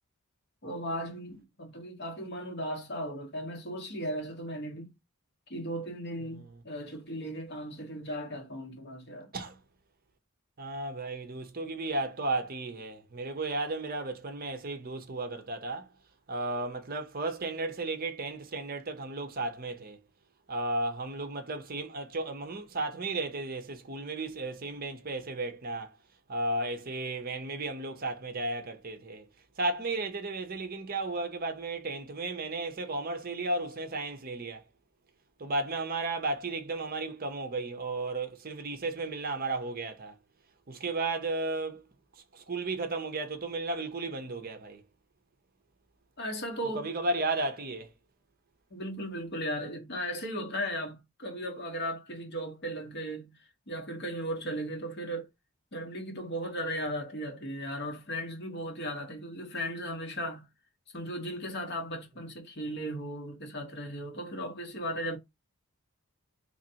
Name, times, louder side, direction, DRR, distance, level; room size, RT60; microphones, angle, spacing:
voice 1, 0.6-4.9 5.5-9.3 46.2-46.8 48.7-55.3 55.7-60.5 60.9-65.2, equal, 50° left, 1.2 m, -36 dB
voice 2, 10.6-15.9 16.3-20.0 20.5-26.0 26.3-29.2 29.6-34.6 35.4-40.1 40.7-41.8 42.3-44.8 46.7-47.9, right 2 dB, 40° right, 0.6 m, -34 dB
3.9 x 3.0 x 2.7 m
head